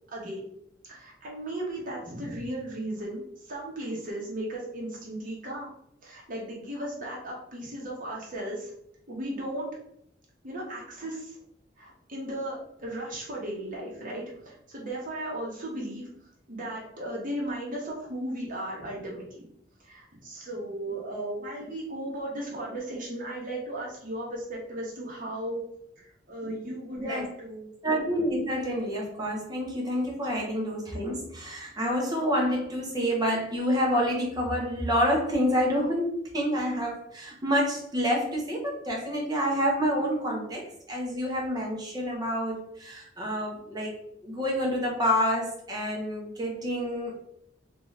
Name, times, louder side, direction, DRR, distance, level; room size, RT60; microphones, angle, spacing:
voice 1, 0.1-0.4 0.9-3.2 3.5-5.7 6.0-8.7 9.1-9.7 10.4-11.4 11.8-16.1 16.5-19.4 19.8-25.6 26.0-27.7, right 1 dB, 45° right, -3 dB, 1.2 m, -36 dB
voice 2, 26.9-27.3 27.8-43.9 44.2-47.2, equal, 20° right, -1 dB, 0.9 m, -28 dB
3.6 x 2.9 x 3.2 m, 0.73 s
head